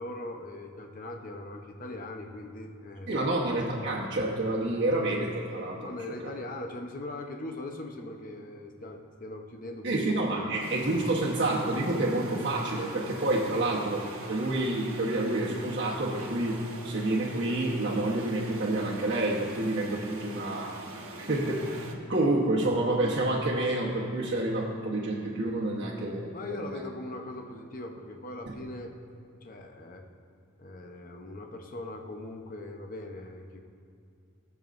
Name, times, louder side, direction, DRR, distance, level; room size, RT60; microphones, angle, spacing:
voice 1, 0.0-3.1 5.8-9.9 10.3-10.5 13.5-13.7 26.3-28.9 29.4-30.0 30.6-33.6, left 2 dB, 40° left, 3 dB, 0.8 m, -40 dB
voice 2, 3.1-6.1 9.8-14.0 14.3-20.8 21.2-26.8 28.5-28.6, right 2 dB, 50° right, -8 dB, 1.2 m, -28 dB
sound 1, 10.6-21.9, right 2 dB, 80° right, 1.3 m, -44 dB
21.0 x 7.1 x 2.6 m, 2.5 s
head